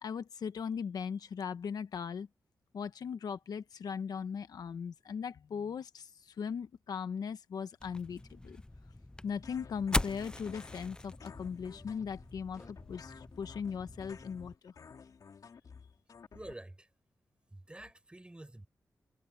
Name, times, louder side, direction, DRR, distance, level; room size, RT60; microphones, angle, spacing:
voice 1, 0.0-2.3 2.7-8.6 9.2-14.7, left 6 dB, 90° left, 1.2 m, -39 dB
sound 1, 7.8-14.5, left 1 dB, 15° left, 0.5 m, -41 dB
sound 2, 9.4-16.5, left 6 dB, 70° left, 3.0 m, -53 dB
voice 2, 16.3-16.9 17.5-18.7, right 1 dB, 15° right, 7.9 m, -48 dB
wide cardioid pair, 90°, 6 cm